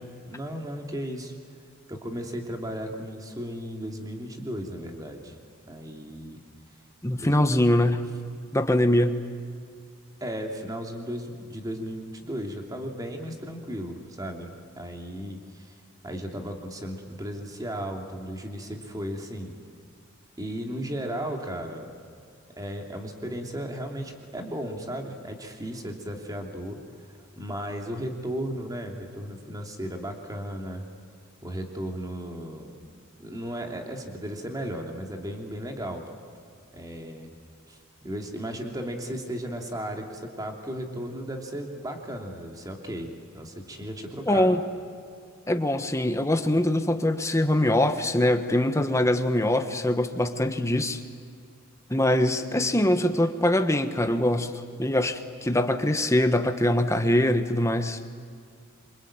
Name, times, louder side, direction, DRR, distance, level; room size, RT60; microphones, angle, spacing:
voice 1, 0.3-1.3 1.9-5.3 5.7-6.4 7.1-7.4 10.2-15.8 16.0-19.5 20.4-21.9 22.6-26.8 27.3-30.8 31.4-32.8 33.2-36.1 36.7-37.3 37.7-37.8 38.0-44.6, equal, 15° right, 3 dB, 2.9 m, -35 dB
voice 2, 7.0-8.0 8.5-9.2 44.3-44.6 45.5-51.0 51.9-54.5 54.8-58.0, left 1 dB, 15° left, 8 dB, 1.3 m, -23 dB
27.0 x 24.0 x 8.9 m, 2.3 s
head